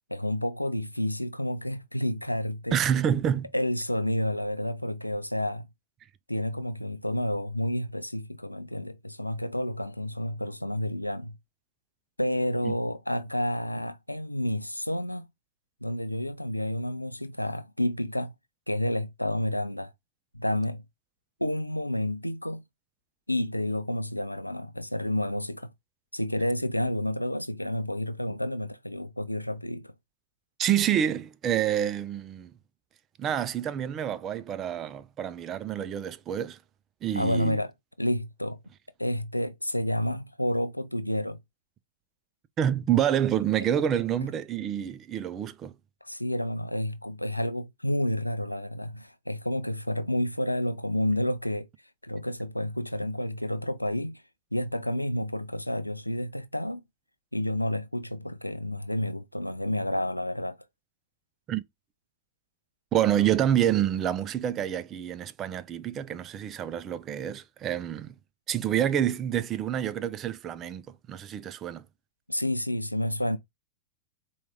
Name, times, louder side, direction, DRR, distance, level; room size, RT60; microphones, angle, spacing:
voice 1, 0.1-2.8 3.5-5.7 6.3-11.4 12.2-15.3 15.8-18.3 18.7-19.9 20.3-20.8 21.4-22.6 23.3-25.7 26.1-29.9 37.1-37.7 38.0-38.6 39.0-41.4 46.0-51.7 52.0-54.2 54.5-56.8 57.3-60.6 72.3-73.4, left 1 dB, 85° left, 0.4 m, -30 dB
voice 2, 2.7-3.5 12.6-12.7 30.6-32.5 33.2-36.6 37.0-37.6 42.6-45.7 61.5-61.6 62.9-68.1 68.5-71.8, right 10 dB, 30° right, 0.4 m, -27 dB
4.6 x 2.4 x 3.4 m
figure-of-eight pair, 90°, 0 cm